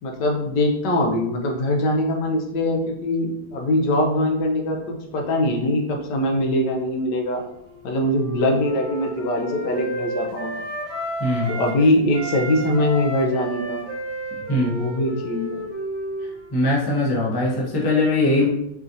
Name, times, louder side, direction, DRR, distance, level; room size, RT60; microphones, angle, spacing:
voice 1, 0.0-7.4 7.8-10.6 11.5-13.8 14.6-15.6, left 1 dB, 75° left, 1 dB, 1.2 m, -22 dB
Wind instrument woodwind instrument, 7.4-11.8 12.1-16.6, equal, 40° right, 0.7 m, -32 dB
voice 2, 11.2-11.5 14.5-14.8 16.5-18.5, left 2 dB, 30° left, -5 dB, 0.4 m, -21 dB
4.8 x 2.7 x 2.6 m, 0.81 s
omnidirectional pair, 1.9 m